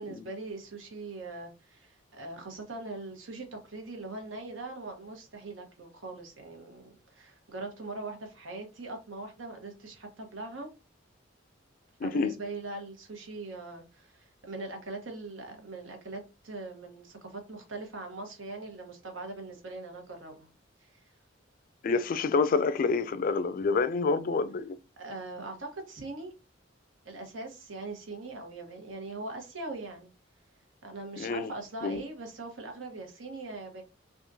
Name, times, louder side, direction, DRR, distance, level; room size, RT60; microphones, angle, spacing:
voice 1, 0.0-10.7 12.0-20.5 20.8-21.0 25.0-26.3 27.0-30.1 30.8-33.8, right 2 dB, 90° right, 1.1 m, -41 dB
voice 2, 12.0-12.3 21.8-24.8 31.2-31.5 31.8-32.0, left 4 dB, 45° left, 0.3 m, -27 dB
3.6 x 2.4 x 2.7 m
head